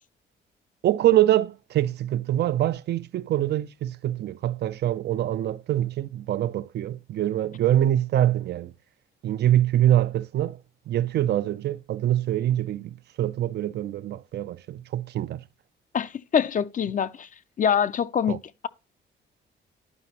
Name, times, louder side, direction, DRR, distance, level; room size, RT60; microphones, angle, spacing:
voice 1, 0.8-8.7 9.2-10.6 10.9-15.4 18.3-18.4, right 12 dB, 60° right, 0.4 m, -24 dB
voice 2, 15.9-17.3 17.6-18.7, left 8 dB, 40° left, 0.5 m, -25 dB
11.0 x 4.8 x 2.8 m
cardioid pair, 90°, 20 cm